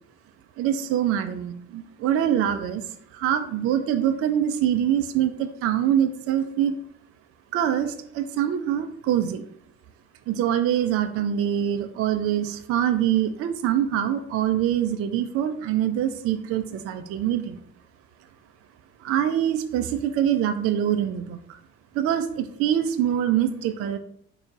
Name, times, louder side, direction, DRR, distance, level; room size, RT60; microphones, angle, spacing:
voice 1, 0.6-2.8 3.1-6.8 7.5-9.4 10.3-17.6 19.0-21.6 21.9-24.0, right 10 dB, 35° right, 8 dB, 0.4 m, -24 dB
4.6 x 2.0 x 3.7 m, 0.67 s
figure-of-eight pair, 50°, 41 cm